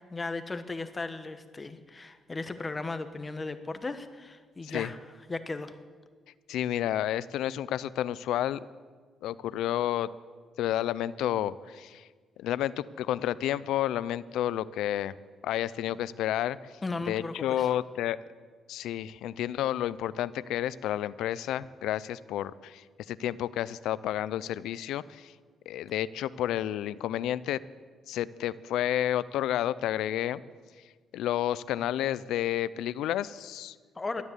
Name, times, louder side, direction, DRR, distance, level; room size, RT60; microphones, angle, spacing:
voice 1, 0.1-5.0 5.3-5.7 16.8-17.7 33.9-34.2, left 3 dB, 25° left, 10 dB, 1.0 m, -36 dB
voice 2, 6.5-8.7 9.2-10.1 10.6-12.0 12.4-15.1 15.4-16.7 17.1-18.2 18.7-25.3 25.7-27.6 28.1-30.4 31.1-33.8 34.2-34.3, left 12 dB, 85° left, 18 dB, 0.4 m, -30 dB
13.0 x 9.5 x 8.2 m, 1.5 s
cardioid pair, 90°, 0 cm